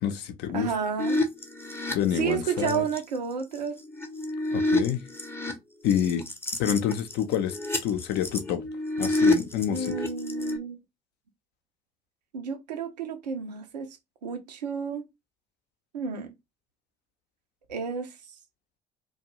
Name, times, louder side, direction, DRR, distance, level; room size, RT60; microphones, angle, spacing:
voice 1, 0.0-0.7 1.9-2.9 4.5-5.0 5.8-6.2 6.6-7.6 7.8-8.6 9.0-9.9, left 9 dB, 55° left, 0.6 m, -27 dB
voice 2, 0.5-1.2 2.2-3.8 9.7-10.8 12.3-13.9 14.2-15.1 15.9-16.3 17.7-18.1, right 6 dB, 80° right, 0.6 m, -31 dB
sound 1, 1.0-3.0 3.5-5.5 5.9-10.6, left 2 dB, 10° left, 0.6 m, -29 dB
2.5 x 2.2 x 2.9 m
figure-of-eight pair, 50°, 21 cm